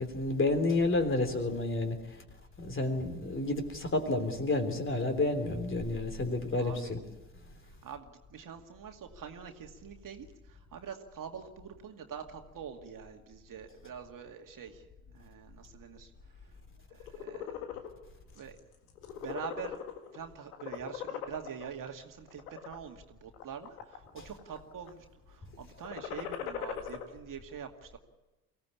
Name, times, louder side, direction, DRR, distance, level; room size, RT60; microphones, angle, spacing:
voice 1, 0.0-2.0 2.6-7.0, left 2 dB, 25° left, 6 dB, 3.4 m, -30 dB
voice 2, 6.6-7.0 7.8-14.8 15.1-16.1 16.9-17.5 18.3-18.6 19.1-19.8 20.1-28.0, right 7 dB, 45° right, 4 dB, 2.3 m, -45 dB
sound 1, 16.9-17.9 18.4-18.6 18.9-20.2 20.5-21.6 22.3-22.7 23.3-24.1 24.4-24.9 25.8-27.0, left 9 dB, 80° left, 1.8 m, -39 dB
24.0 x 16.5 x 8.5 m, 1.1 s
hypercardioid pair, 60°, 44 cm